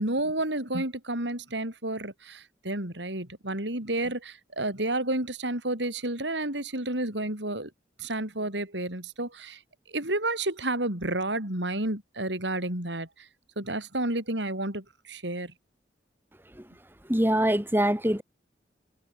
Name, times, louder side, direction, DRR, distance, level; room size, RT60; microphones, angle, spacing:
voice 1, 0.0-7.7 8.0-9.6 9.9-13.3 13.6-15.5, right 2 dB, 85° right, 6.9 m, -31 dB
voice 2, 17.1-18.2, right 1 dB, 10° right, 2.3 m, -23 dB
head